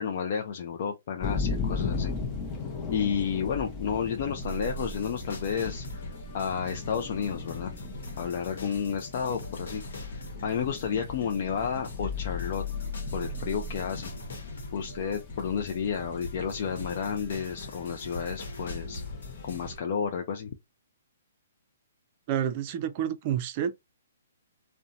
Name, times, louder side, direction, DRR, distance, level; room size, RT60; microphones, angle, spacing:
voice 1, 0.0-2.1 2.9-6.1 6.3-7.7 8.2-12.6 13.1-14.1 14.7-19.0 19.4-20.5, left 7 dB, 50° left, 0.4 m, -31 dB
sound 1, 1.2-19.8, left 4 dB, 25° left, 0.7 m, -39 dB
sound 2, 4.4-19.8, left 2 dB, 75° left, 1.0 m, -39 dB
voice 2, 22.3-23.7, right 10 dB, 40° right, 0.4 m, -29 dB
2.7 x 2.1 x 2.5 m
hypercardioid pair, 140°, 0 cm